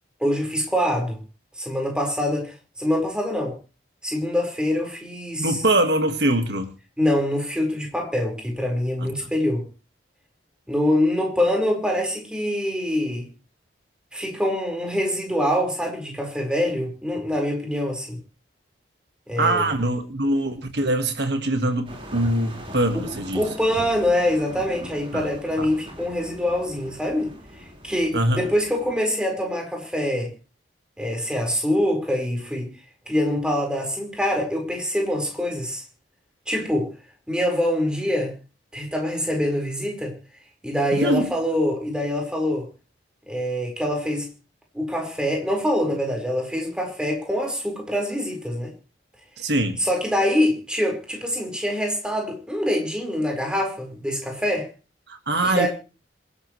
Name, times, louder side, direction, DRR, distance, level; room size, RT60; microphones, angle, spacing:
voice 1, 0.2-1.2 1.6-3.6 4.0-5.6 7.0-9.6 10.7-13.3 14.1-18.2 19.3-19.6 22.9-23.1 23.3-27.3 27.8-30.3 31.0-32.7 33.1-35.8 36.5-36.9 37.3-38.3 38.7-40.1 40.6-42.7 43.3-44.3 44.7-48.7 49.8-54.7 55.4-55.7, left 1 dB, 5° right, 4.7 m, -24 dB
voice 2, 5.4-6.7 9.0-9.1 19.4-23.5 25.1-25.3 25.6-25.7 28.1-28.4 40.9-41.3 49.4-49.8 55.1-55.7, right 1 dB, 60° right, 1.7 m, -23 dB
sound 1, 21.8-29.0, equal, 30° right, 4.7 m, -41 dB
26.5 x 11.5 x 3.2 m
head